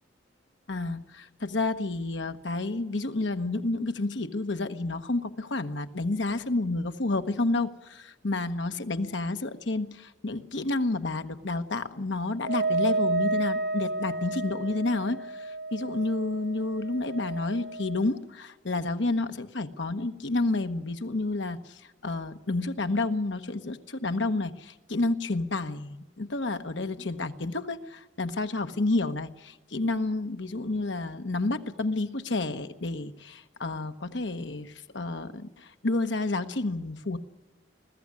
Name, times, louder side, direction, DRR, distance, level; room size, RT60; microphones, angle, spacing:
voice 1, 0.7-37.2, left 2 dB, 70° left, 9 dB, 1.2 m, -30 dB
Wind instrument woodwind instrument, 12.4-18.1, right 2 dB, 70° right, 2.3 m, -31 dB
21.0 x 14.5 x 9.7 m, 1.1 s
head